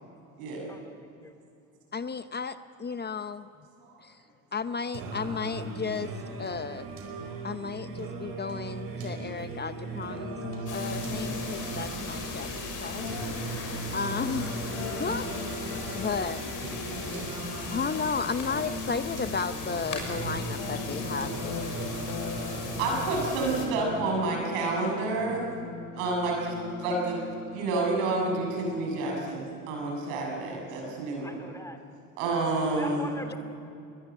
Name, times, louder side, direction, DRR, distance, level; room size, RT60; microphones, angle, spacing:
voice 1, 1.9-3.5 4.0-4.2 4.5-6.1 6.4-6.9 7.4-10.4 10.7-12.5 12.8-13.2 13.5-13.6 13.9-14.6 15.0-16.4 17.3-22.0, left 5 dB, 25° left, 12 dB, 0.8 m, -34 dB
Singing, 4.9-23.9, right 3 dB, 65° right, 5.0 m, -38 dB
sound 1, 9.8-28.8, left 2 dB, 85° left, 3.7 m, -40 dB
sound 2, 10.7-23.7, left 4 dB, 50° left, 6.3 m, -38 dB
voice 2, 22.8-25.4 26.0-27.2 27.5-31.4 32.2-33.3, right 2 dB, 85° right, 0 dB, 6.9 m, -29 dB
voice 3, 31.2-31.8 32.7-33.4, left 1 dB, 10° left, 6 dB, 3.0 m, -40 dB
21.0 x 20.5 x 9.0 m, 2.6 s
supercardioid pair, 80°, 40 cm